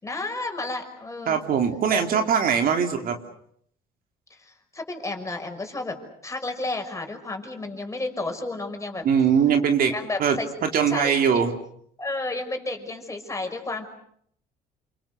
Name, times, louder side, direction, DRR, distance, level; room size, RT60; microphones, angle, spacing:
voice 1, 0.0-1.4 1.9-2.3 4.3-6.0 6.2-9.0 9.9-10.5 10.9-11.5 12.0-13.9, left 2 dB, 20° left, 4 dB, 5.7 m, -32 dB
voice 2, 1.3-3.2 9.0-9.9 10.2-10.4 10.7-11.5, right 7 dB, 60° right, 5 dB, 3.1 m, -21 dB
29.0 x 26.0 x 6.7 m, 0.68 s
cardioid pair, 110°, 17 cm